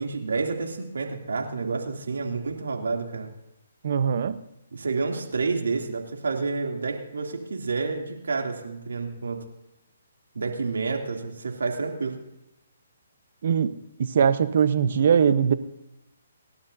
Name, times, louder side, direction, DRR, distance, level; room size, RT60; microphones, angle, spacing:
voice 1, 0.0-3.3 4.7-9.4 10.3-12.2, right 4 dB, 80° right, 2 dB, 2.8 m, -29 dB
voice 2, 3.8-4.4 13.4-13.7 14.1-15.5, right 7 dB, 55° right, 12 dB, 0.9 m, -21 dB
29.0 x 11.5 x 2.7 m, 0.89 s
hypercardioid pair, 145°, 0 cm